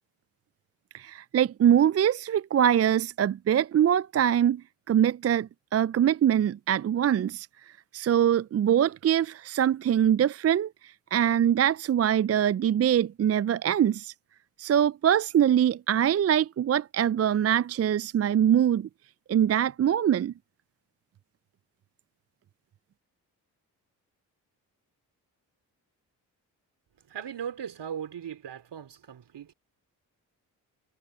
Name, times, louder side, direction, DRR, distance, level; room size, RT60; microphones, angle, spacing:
voice 1, 0.9-4.6 4.9-7.5 7.9-10.7 11.1-14.1 14.6-18.9 19.3-20.3, right 10 dB, 35° right, 0.5 m, -23 dB
voice 2, 27.1-29.5, right 8 dB, 60° right, 3.5 m, -38 dB
hypercardioid pair, 40°, 47 cm